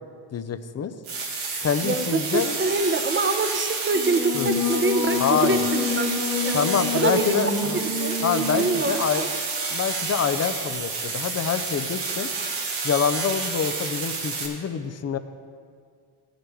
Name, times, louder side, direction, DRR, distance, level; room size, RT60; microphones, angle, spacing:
voice 1, 0.3-0.9 1.6-2.6 4.3-4.5 5.2-5.7 6.5-7.8 8.2-9.3 9.7-12.3 12.8-15.2, left 7 dB, 35° left, 10 dB, 0.7 m, -26 dB
sound 1, 1.0-14.5, right 4 dB, 85° right, 2.2 m, -30 dB
voice 2, 1.8-6.1 6.4-6.6 6.9-7.4 7.7-9.3, right 3 dB, 25° right, 8 dB, 0.9 m, -25 dB
Singing, 3.9-8.8, left 5 dB, 50° left, 1.8 m, -28 dB
15.5 x 6.7 x 4.6 m, 2.2 s
supercardioid pair, 65°, 47 cm